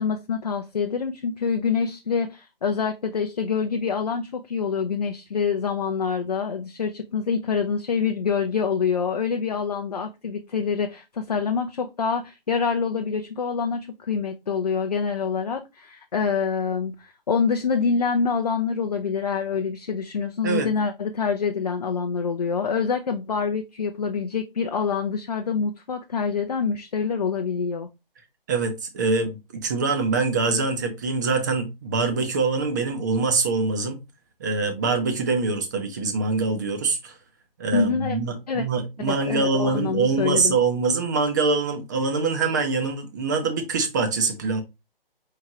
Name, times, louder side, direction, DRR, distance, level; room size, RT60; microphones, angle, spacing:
voice 1, 0.0-27.9 37.7-38.2 38.5-38.6 39.1-40.5, left 5 dB, 45° left, 0.5 m, -26 dB
voice 2, 28.5-34.0 34.4-37.2 37.6-44.6, right 4 dB, 20° right, 0.7 m, -24 dB
4.7 x 3.5 x 2.8 m
figure-of-eight pair, 140°, 29 cm